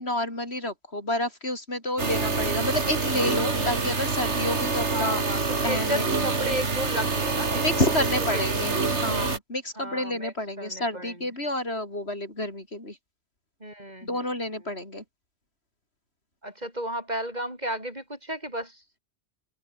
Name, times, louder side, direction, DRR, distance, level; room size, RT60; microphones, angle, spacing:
voice 1, 0.0-5.2 5.6-6.0 7.5-13.0 14.0-15.0, left 1 dB, 65° left, 7.2 m, -29 dB
sound 1, 2.0-9.4, right 4 dB, 85° right, 2.8 m, -26 dB
voice 2, 4.7-7.9 8.3-8.6 9.8-11.3 13.6-14.3 16.4-18.8, right 1 dB, 40° right, 8.3 m, -34 dB
open air
omnidirectional pair, 1.1 m